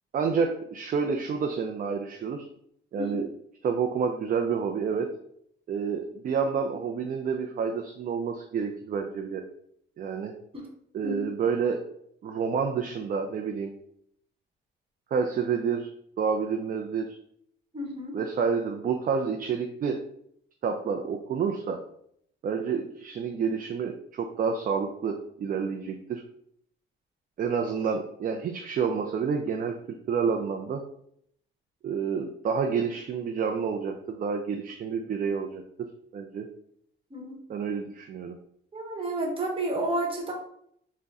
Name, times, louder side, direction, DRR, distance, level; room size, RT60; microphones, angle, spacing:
voice 1, 0.1-2.5 2.9-3.3 3.6-5.1 5.7-9.4 10.0-10.3 10.9-11.8 12.2-13.7 15.1-15.9 16.2-17.2 18.1-20.0 20.6-21.8 22.4-26.2 27.4-29.8 30.1-30.8 31.8-36.5 37.5-38.4, right 6 dB, 45° right, 3 dB, 0.4 m, -29 dB
voice 2, 3.0-3.3 10.5-10.6 11.0-11.2 17.7-18.2 37.1-37.4 38.7-40.3, right 1 dB, 25° right, 0 dB, 1.1 m, -31 dB
3.6 x 2.1 x 3.9 m, 0.69 s
cardioid pair, 90°, 20 cm